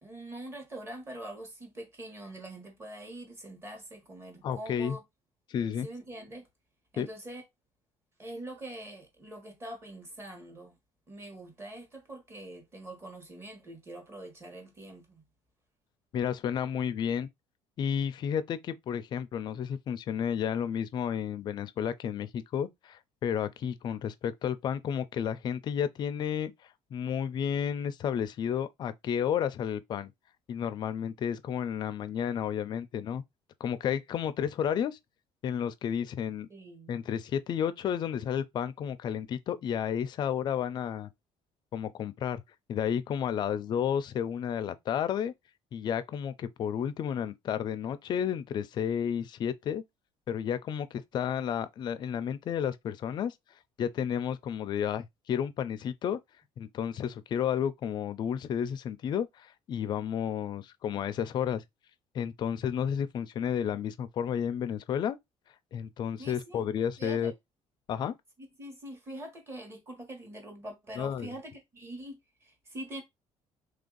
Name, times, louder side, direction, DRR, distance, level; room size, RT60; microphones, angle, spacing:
voice 1, 0.0-5.0 5.8-6.5 6.9-7.4 8.2-10.7 11.1-15.2 36.5-37.0 66.2-66.7 67.0-67.3 68.6-73.0, right 1 dB, 20° right, 1.2 m, -44 dB
voice 2, 4.4-5.0 5.5-5.9 7.0-7.1 16.1-17.3 17.8-26.5 26.9-30.1 30.5-33.2 33.6-35.0 35.4-36.5 36.9-41.1 41.7-42.4 42.7-45.3 45.7-49.8 50.3-53.3 53.8-56.2 56.6-61.6 62.1-65.2 65.7-67.3 67.9-68.1 71.0-71.3, left 8 dB, 40° left, 0.4 m, -32 dB
3.2 x 2.6 x 3.8 m
cardioid pair, 170°, 12 cm